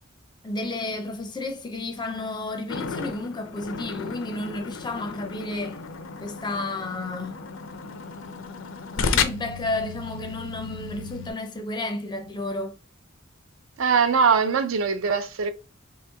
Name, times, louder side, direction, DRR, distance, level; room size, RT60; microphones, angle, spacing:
voice 1, 0.4-5.8 6.2-7.5 8.9-12.7, left 2 dB, 20° left, 0.4 m, -32 dB
sound 1, 2.7-11.3, left 5 dB, 75° left, 0.5 m, -33 dB
voice 2, 13.8-15.5, right 5 dB, 80° right, 0.5 m, -21 dB
3.0 x 2.9 x 3.4 m
head